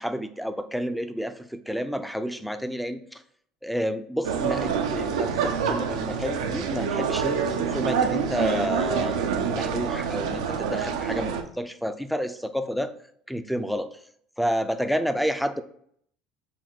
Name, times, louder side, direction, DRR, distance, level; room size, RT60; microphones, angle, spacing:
voice 1, 0.0-3.2 3.6-9.2 9.5-12.9 13.3-14.0 14.4-15.6, equal, ahead, 10 dB, 0.4 m, -30 dB
sound 1, 4.2-11.4, right 6 dB, 85° right, 0.4 m, -26 dB
3.7 x 2.2 x 4.4 m, 0.65 s
hypercardioid pair, 75°, 3 cm